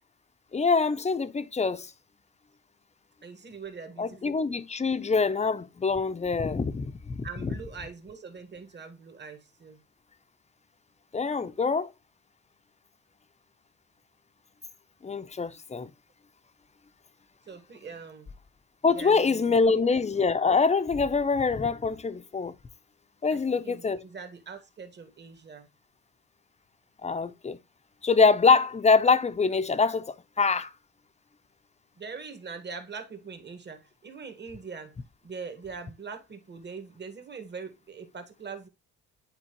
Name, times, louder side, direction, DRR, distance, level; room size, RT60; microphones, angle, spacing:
voice 1, 0.5-1.9 4.0-7.5 11.1-11.9 15.0-15.9 18.8-22.5 23.2-24.0 27.0-27.6 28.0-30.7, left 4 dB, 20° left, 0.7 m, -24 dB
voice 2, 3.2-4.4 7.2-9.8 17.5-18.3 18.9-20.0 23.5-25.7 32.0-34.9 35.2-38.7, right 5 dB, 35° right, 1.7 m, -42 dB
8.9 x 4.2 x 3.0 m
cardioid pair, 90°, 30 cm